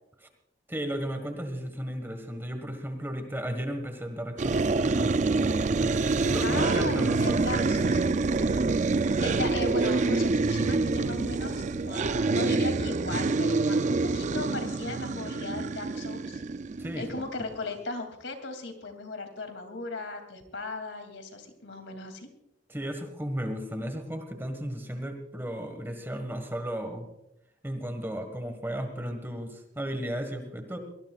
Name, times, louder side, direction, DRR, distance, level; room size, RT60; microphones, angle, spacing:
voice 1, 0.7-7.7 16.8-17.1 22.7-27.1 27.6-30.8, equal, 10° right, 6 dB, 1.6 m, -35 dB
sound 1, 4.4-17.3, right 3 dB, 40° right, 0.4 m, -26 dB
voice 2, 6.4-8.0 9.2-16.4 16.9-22.3, left 2 dB, 85° left, 6 dB, 2.8 m, -37 dB
23.5 x 19.0 x 2.4 m, 0.83 s
head